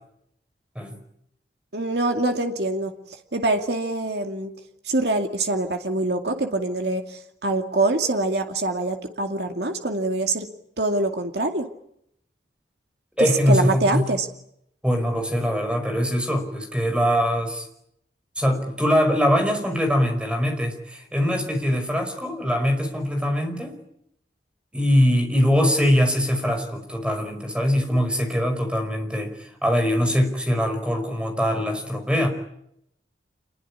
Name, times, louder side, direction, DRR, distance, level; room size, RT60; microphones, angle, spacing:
voice 1, 1.7-2.9 3.3-4.5 4.8-10.5 10.8-11.7 13.2-14.3, right 2 dB, 65° right, 5 dB, 2.4 m, -24 dB
voice 2, 13.2-14.1 14.8-17.7 18.4-23.7 24.7-32.3, equal, 5° right, 5 dB, 5.3 m, -22 dB
27.0 x 21.5 x 9.8 m, 0.76 s
head